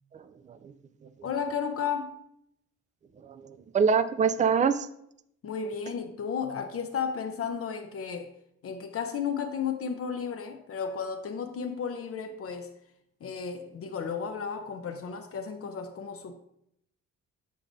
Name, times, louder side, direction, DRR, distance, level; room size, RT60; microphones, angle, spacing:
voice 1, 0.1-0.6 3.2-4.9, right 6 dB, 25° right, 0.4 m, -25 dB
voice 2, 1.2-2.1 5.4-8.3 8.6-12.7 13.2-16.4, left 6 dB, 50° left, 0.6 m, -33 dB
7.7 x 4.7 x 2.6 m
cardioid pair, 90°, 30 cm